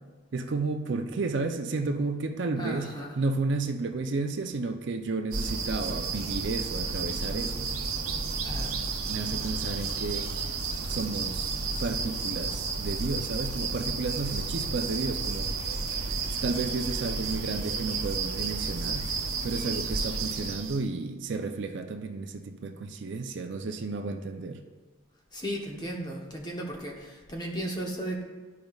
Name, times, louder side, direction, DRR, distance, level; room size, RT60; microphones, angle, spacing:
voice 1, 0.3-7.7 9.1-10.3 10.9-11.5 11.8-15.5 16.4-19.1 19.4-24.6, right 3 dB, 55° right, 6 dB, 0.5 m, -32 dB
voice 2, 2.6-3.2 8.3-8.8 25.3-28.2, right 1 dB, 20° left, 0 dB, 0.9 m, -35 dB
sound 1, 5.3-20.9, right 4 dB, 85° right, 0.9 m, -32 dB
12.5 x 5.1 x 2.4 m, 1.3 s
head